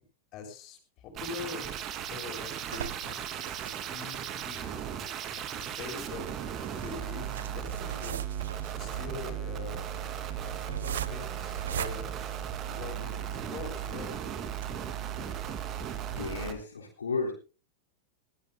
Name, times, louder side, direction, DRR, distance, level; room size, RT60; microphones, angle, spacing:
voice 1, 0.3-3.3 3.9-4.7 5.3-6.3 6.8-8.2 8.7-9.8 10.4-12.1 12.7-14.1, left 5 dB, 35° left, 4 dB, 6.9 m, -43 dB
sound 1, 1.2-16.5, right 9 dB, 35° right, 2.5 m, -36 dB
sound 2, 1.9-13.1 13.6-13.7 14.0-14.1 14.5-14.7, right 9 dB, 65° right, 1.1 m, -41 dB
voice 2, 16.1-17.3, left 4 dB, 70° left, 0 dB, 3.6 m, -33 dB
21.5 x 16.5 x 2.2 m, 0.34 s
figure-of-eight pair, 90°, 0 cm